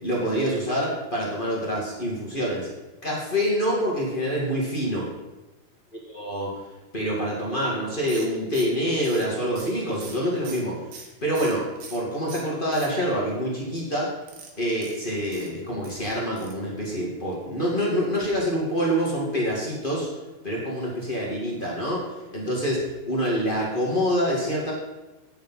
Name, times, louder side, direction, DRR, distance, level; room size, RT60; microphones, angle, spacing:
voice 1, 0.0-2.7 3.0-5.1 6.1-6.5 6.9-10.8 11.2-11.6 11.9-14.1 14.6-20.1 20.4-24.7, equal, 35° left, -4 dB, 0.8 m, -26 dB
sound 1, 8.1-12.0 12.3-13.3 14.2-16.0 16.4-16.7 16.9-17.0 17.3-17.4, right 5 dB, 75° right, 3.0 m, -43 dB
9.1 x 7.2 x 5.5 m, 1.1 s
omnidirectional pair, 4.4 m